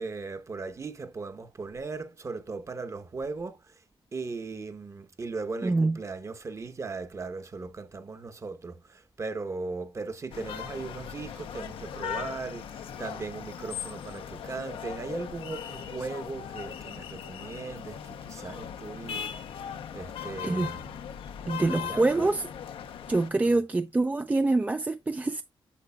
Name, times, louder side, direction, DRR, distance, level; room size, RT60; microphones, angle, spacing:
voice 1, 0.0-3.8 4.1-19.3 19.9-20.9 21.5-22.3, right 4 dB, 35° right, 0.9 m, -38 dB
voice 2, 5.6-6.0 20.4-20.7 21.5-22.4 23.1-25.4, right 2 dB, 15° right, 0.4 m, -25 dB
sound 1, 10.3-23.3, left 8 dB, 85° left, 0.7 m, -39 dB
8.4 x 6.6 x 2.2 m
cardioid pair, 95°, 9 cm